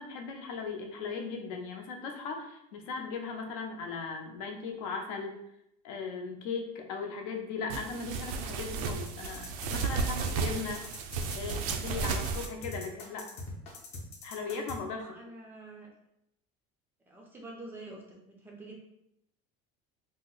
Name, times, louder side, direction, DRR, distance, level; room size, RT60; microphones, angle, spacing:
voice 1, 0.0-5.4 5.8-10.8 11.3-13.3 14.2-15.1, left 4 dB, 75° left, 3 dB, 0.6 m, -38 dB
sound 1, 7.7-12.5, right 5 dB, 80° right, 0.4 m, -33 dB
sound 2, 8.9-14.8, left 2 dB, 35° left, 0.6 m, -41 dB
voice 2, 15.0-15.9 17.1-18.8, right 2 dB, 10° right, -1 dB, 0.3 m, -47 dB
2.8 x 2.0 x 3.8 m, 0.80 s
cardioid pair, 175°, 18 cm